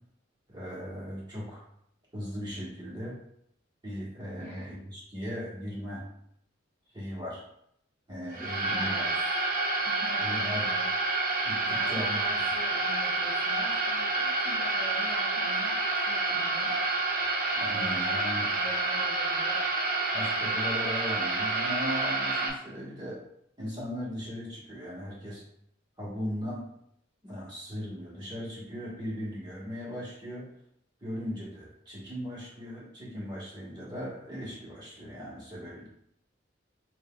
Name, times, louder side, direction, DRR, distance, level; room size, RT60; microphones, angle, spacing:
voice 1, 0.5-1.6 2.1-3.2 3.8-6.0 6.9-7.4 8.1-9.1 10.2-10.6 11.4-12.2 17.5-18.5 20.1-23.2 23.6-25.4 26.0-26.7 27.2-30.5 31.0-35.9, equal, 25° right, -6 dB, 1.4 m, -38 dB
voice 2, 4.4-4.7 8.7-9.2 9.8-10.9 11.7-16.8 17.7-19.7, equal, 10° left, -8 dB, 0.8 m, -44 dB
sound 1, 8.3-22.5, right 2 dB, 45° right, 0.6 m, -28 dB
5.7 x 2.7 x 2.3 m, 0.71 s
head